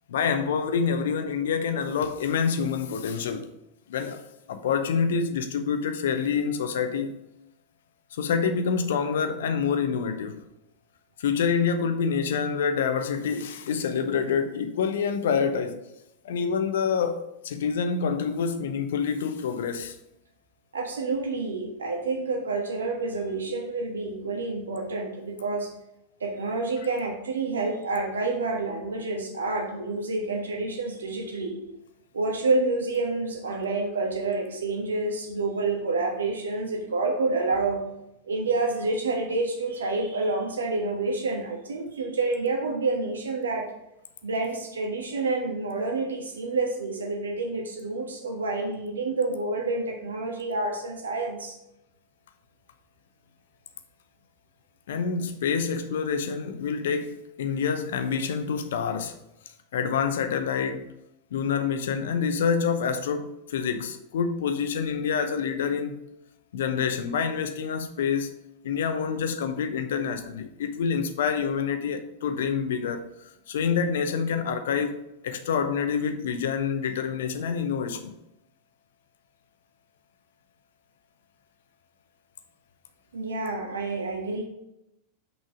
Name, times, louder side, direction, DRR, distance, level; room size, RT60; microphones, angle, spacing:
voice 1, 0.1-3.5 3.9-4.2 4.5-7.1 8.1-10.4 11.2-15.8 16.2-20.0 54.9-59.2 59.7-60.9 61.3-65.9 66.5-68.3 68.6-75.0 75.2-78.1, left 6 dB, 60° left, 0.7 m, -27 dB
voice 2, 20.7-25.7 26.2-31.5 32.1-37.8 38.2-43.7 44.2-51.6 83.1-84.4, right 3 dB, 70° right, 1.4 m, -28 dB
6.3 x 5.4 x 4.9 m
figure-of-eight pair, 90°, 0 cm